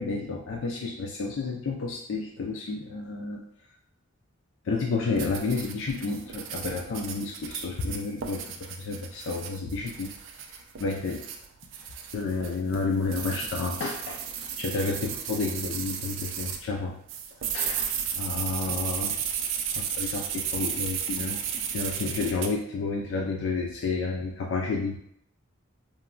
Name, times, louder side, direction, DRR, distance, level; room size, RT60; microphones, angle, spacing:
voice 1, 0.0-3.4 4.7-10.1 10.8-11.2 12.1-17.0 17.5-17.9 18.2-19.1 19.8-21.4 21.7-25.0, left 4 dB, 70° left, 0 dB, 0.4 m, -31 dB
sound 1, 5.2-16.6 17.1-22.5, right 8 dB, 70° right, 0.3 m, -34 dB
3.0 x 2.2 x 2.4 m, 0.68 s
head